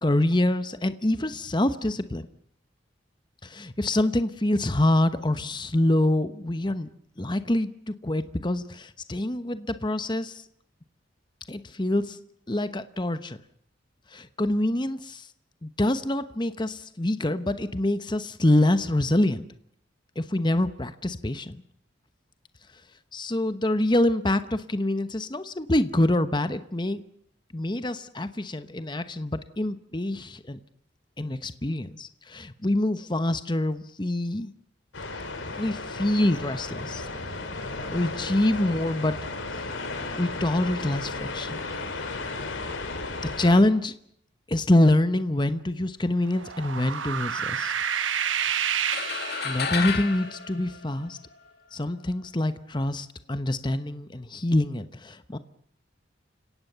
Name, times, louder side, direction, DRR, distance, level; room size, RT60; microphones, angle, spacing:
voice 1, 0.0-2.3 3.4-6.9 7.2-10.4 11.5-12.2 12.5-13.4 14.1-15.3 15.6-19.5 20.2-21.6 23.1-27.0 27.5-30.6 31.2-34.5 35.5-37.0 37.9-39.2 39.5-39.6 40.2-41.6 43.4-43.9 44.5-47.7 49.4-51.2 51.7-55.4, left 1 dB, 25° left, 11 dB, 1.0 m, -25 dB
sound 1, 34.9-43.6, left 3 dB, 85° left, 3.1 m, -34 dB
sound 2, 46.3-50.0, right 8 dB, 90° right, 1.1 m, -29 dB
sound 3, 48.9-51.5, left 6 dB, 55° left, 2.2 m, -32 dB
29.0 x 17.5 x 6.9 m, 0.71 s
head